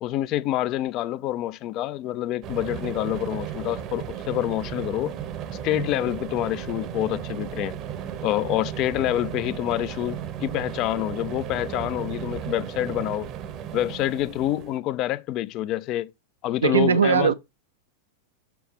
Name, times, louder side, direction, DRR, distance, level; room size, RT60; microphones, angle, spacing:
voice 1, 0.0-5.1 5.6-7.7 8.2-13.3 13.7-16.1 16.4-17.3, left 14 dB, 40° left, 0.4 m, -27 dB
sound 1, 2.4-14.8, right 9 dB, 35° right, 0.8 m, -35 dB
voice 2, 16.6-17.3, right 6 dB, 70° right, 0.5 m, -19 dB
6.1 x 5.9 x 3.6 m
figure-of-eight pair, 90°, 0 cm